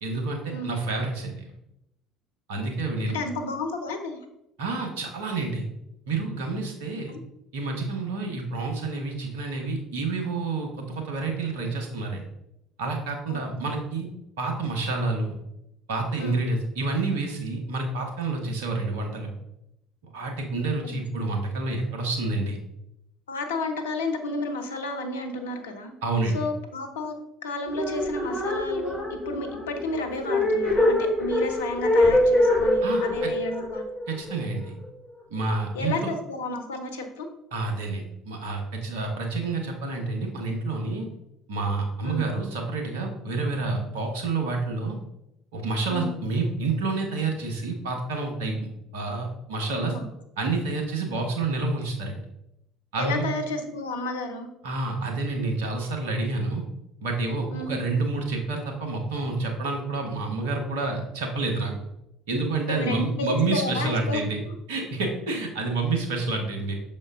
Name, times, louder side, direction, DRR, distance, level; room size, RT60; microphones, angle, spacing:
voice 1, 0.0-1.5 2.5-3.2 4.6-5.6 6.1-7.1 7.5-12.2 12.8-14.1 14.4-15.3 15.9-19.3 20.1-22.6 26.0-26.4 32.8-33.3 34.1-34.7 35.3-35.9 37.5-41.1 41.5-45.0 45.5-48.6 48.9-49.9 50.4-52.1 52.9-53.2 54.6-56.6 57.0-61.7 62.3-64.4 64.7-66.7, right 3 dB, 75° right, 2 dB, 1.3 m, -28 dB
voice 2, 3.1-4.2 7.1-7.2 13.3-13.4 16.2-16.4 20.8-20.9 23.3-25.9 26.3-27.1 27.4-33.8 35.7-37.3 42.0-42.2 45.9-46.1 49.7-50.1 53.0-54.5 57.5-57.7 62.7-64.2 64.5-64.6, left 2 dB, 80° left, 6 dB, 0.8 m, -32 dB
sound 1, 27.7-34.8, left 1 dB, ahead, 1.6 m, -24 dB
6.4 x 4.4 x 3.7 m, 0.83 s
figure-of-eight pair, 60°, 0 cm